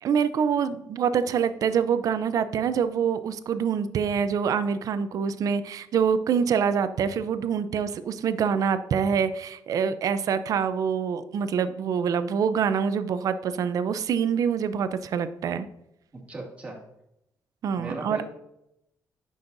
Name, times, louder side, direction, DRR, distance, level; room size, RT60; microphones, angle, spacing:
voice 1, 0.0-15.7 17.6-18.2, right 7 dB, 60° right, 12 dB, 0.5 m, -25 dB
voice 2, 16.1-16.8 17.8-18.2, right 2 dB, 20° right, -2 dB, 2.1 m, -37 dB
9.4 x 6.3 x 2.6 m, 0.82 s
cardioid pair, 120°, 7 cm